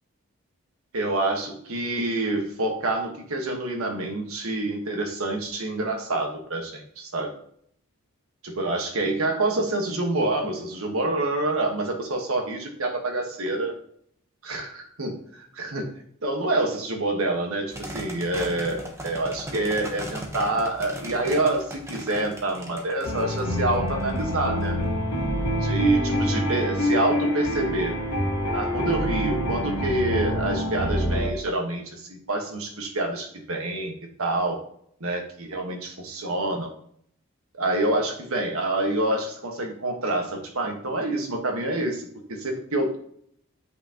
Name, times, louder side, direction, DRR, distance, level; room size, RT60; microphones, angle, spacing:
voice 1, 0.9-7.3 8.4-13.7 14.4-15.9 16.2-24.8 25.5-27.9 28.5-33.9 34.2-34.6 35.0-36.7 37.5-43.0, right 2 dB, 75° right, 2 dB, 1.4 m, -27 dB
sound 1, 17.7-24.7, equal, 10° right, 0.9 m, -38 dB
sound 2, 23.0-31.3, left 1 dB, 80° left, 1.3 m, -26 dB
7.9 x 5.8 x 2.9 m, 0.66 s
head